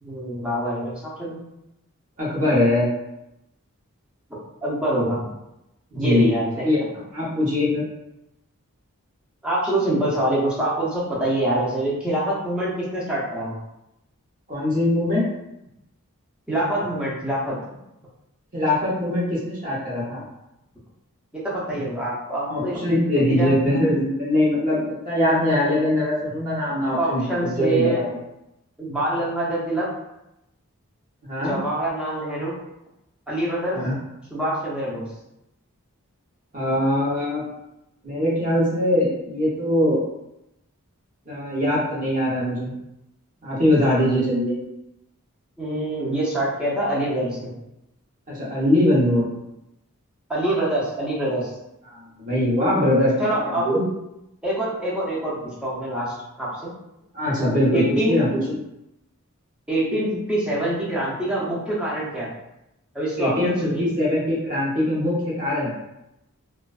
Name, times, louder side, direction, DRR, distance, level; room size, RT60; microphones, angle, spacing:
voice 1, 0.0-1.4 4.6-5.3 5.9-6.7 9.4-13.6 16.5-17.6 21.3-23.5 27.0-28.0 28.8-29.9 31.4-32.5 33.3-33.8 34.3-35.1 45.6-47.5 50.3-51.5 53.2-53.7 54.4-56.7 57.7-58.2 59.7-62.3 62.9-63.9, right 1 dB, 5° right, -8 dB, 0.6 m, -25 dB
voice 2, 2.2-2.9 5.9-6.4 6.6-6.8 7.1-7.8 14.5-15.3 18.5-20.2 22.5-28.1 31.2-31.6 33.7-33.9 36.5-37.4 38.0-40.0 41.3-42.7 43.4-44.6 48.3-49.3 51.9-53.1 53.4-53.8 57.1-58.5 63.2-65.7, left 1 dB, 35° right, -6 dB, 0.8 m, -22 dB
2.4 x 2.2 x 2.3 m, 0.88 s
head